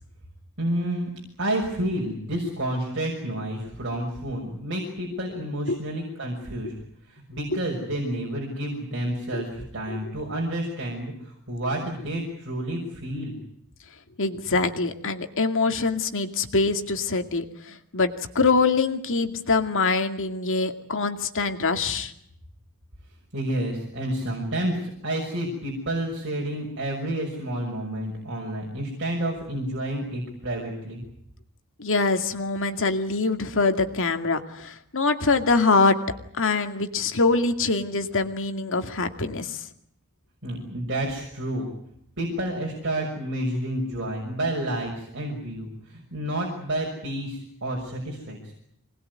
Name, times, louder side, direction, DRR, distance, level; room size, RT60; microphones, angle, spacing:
voice 1, 0.6-1.1 1.4-6.7 7.1-13.4 23.3-31.0 40.4-41.7 42.2-48.5, right 1 dB, 55° right, -1 dB, 6.3 m, -30 dB
voice 2, 14.2-22.1 31.8-36.0 36.3-39.6, left 3 dB, 60° left, 6 dB, 2.3 m, -24 dB
25.5 x 20.0 x 9.7 m, 0.72 s
head